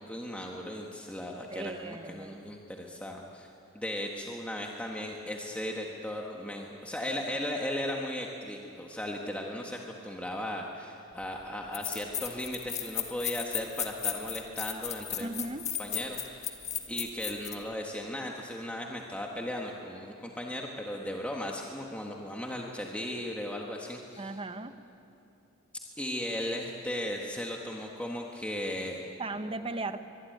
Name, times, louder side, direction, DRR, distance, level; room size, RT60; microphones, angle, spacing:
voice 1, 0.0-15.3 15.8-16.5 16.9-24.4 26.0-29.0, left 1 dB, 5° left, -1 dB, 1.6 m, -37 dB
voice 2, 1.5-2.4 15.2-15.7 24.2-24.7 29.2-30.0, right 2 dB, 25° right, 9 dB, 1.1 m, -37 dB
sound 1, 11.2-11.3 11.7-17.6, left 9 dB, 35° left, 1.8 m, -35 dB
24.0 x 22.5 x 9.5 m, 2.9 s
head